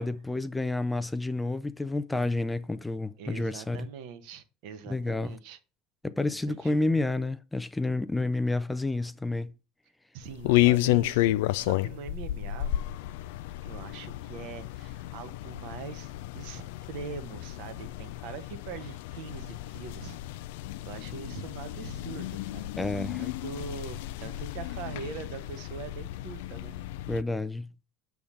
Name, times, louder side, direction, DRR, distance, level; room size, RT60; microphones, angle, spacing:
voice 1, 0.0-3.9 4.9-5.4 6.0-9.5 22.8-23.2 27.1-27.7, left 2 dB, 10° left, 0.5 m, -30 dB
voice 2, 3.2-5.6 6.5-6.8 10.1-12.7 13.6-20.2 20.8-22.7 23.2-26.7, right 7 dB, 65° right, 0.9 m, -42 dB
sound 1, 10.2-27.2, left 16 dB, 70° left, 0.3 m, -31 dB
6.9 x 3.5 x 5.4 m
hypercardioid pair, 75°, 0 cm